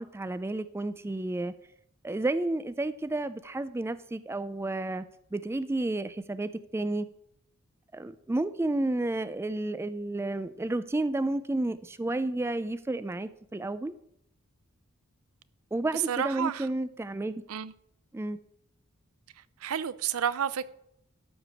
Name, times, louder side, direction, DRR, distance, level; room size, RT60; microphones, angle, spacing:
voice 1, 0.0-1.5 2.0-5.1 5.3-7.1 7.9-14.0 15.7-17.4 18.1-18.4, right 2 dB, 10° right, 0.3 m, -31 dB
voice 2, 16.1-16.6 17.5-17.7 19.6-20.7, right 8 dB, 75° right, 0.5 m, -30 dB
12.5 x 4.9 x 6.8 m
head